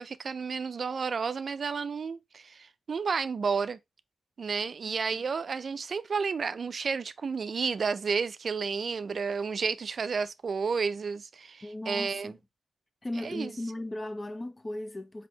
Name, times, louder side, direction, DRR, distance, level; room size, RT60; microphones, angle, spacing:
voice 1, 0.0-3.8 4.4-12.4 13.2-13.5, right 5 dB, 65° right, 0.3 m, -31 dB
voice 2, 4.9-5.2 11.6-12.4 13.0-15.3, left 1 dB, 35° left, 0.7 m, -37 dB
4.3 x 2.8 x 3.0 m
cardioid pair, 50°, 0 cm